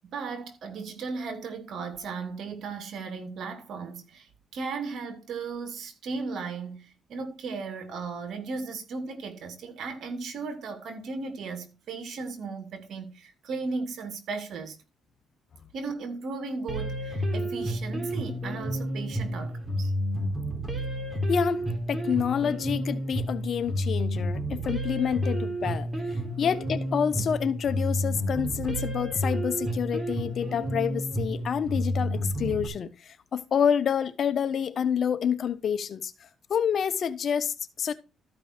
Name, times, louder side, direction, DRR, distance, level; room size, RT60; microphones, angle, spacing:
voice 1, 0.0-14.8 15.7-19.9, right 4 dB, 65° right, 2.4 m, -36 dB
sound 1, 16.7-32.7, equal, 15° right, 4.1 m, -30 dB
voice 2, 21.3-25.9 26.4-36.1 36.5-37.9, left 8 dB, 55° left, 1.1 m, -28 dB
13.5 x 5.4 x 4.5 m
cardioid pair, 90°, 0 cm